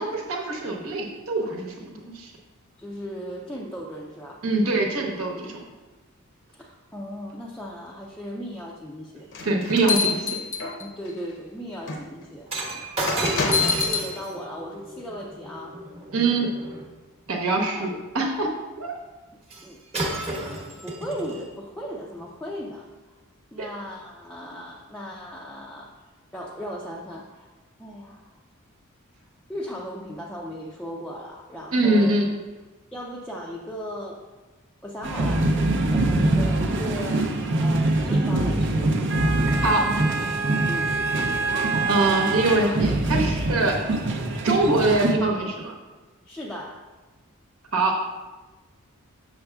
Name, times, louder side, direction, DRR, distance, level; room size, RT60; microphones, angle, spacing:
voice 1, 0.0-2.3 4.4-5.6 9.4-10.4 16.1-16.5 17.3-18.5 18.8-18.9 23.6-23.7 31.7-32.3 39.6-39.9 41.9-43.8 44.4-45.7 47.7-48.0, right 2 dB, 75° right, 1 dB, 1.0 m, -23 dB
voice 2, 2.8-4.8 6.5-9.3 10.8-15.8 17.7-17.9 19.6-19.8 20.8-22.9 23.5-25.9 26.3-27.5 27.8-28.3 29.5-32.1 32.9-34.2 34.8-35.6 35.9-38.9 40.7-40.9 42.6-42.8 46.3-46.9, equal, 5° left, -3 dB, 0.4 m, -37 dB
sound 1, 9.3-11.1 11.9-12.0 13.1-14.1, left 5 dB, 60° left, 0.7 m, -25 dB
Shatter, 12.5-16.9 19.5-19.7 19.9-21.4 22.2-22.3, right 1 dB, 30° right, 0.9 m, -32 dB
sound 2, 35.0-45.2, right 2 dB, 60° right, 0.6 m, -23 dB
6.8 x 6.5 x 2.3 m, 1.2 s
head